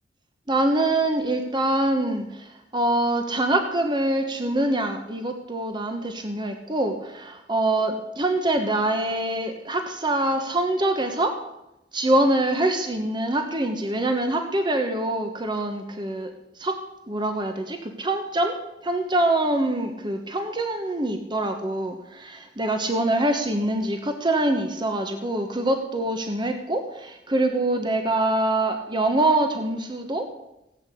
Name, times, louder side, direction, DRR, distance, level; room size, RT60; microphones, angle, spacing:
voice 1, 0.5-11.3 11.9-16.3 16.6-16.8 17.1-18.5 18.8-30.2, right 1 dB, 25° right, 5 dB, 1.3 m, -24 dB
17.5 x 8.3 x 8.3 m, 0.90 s
head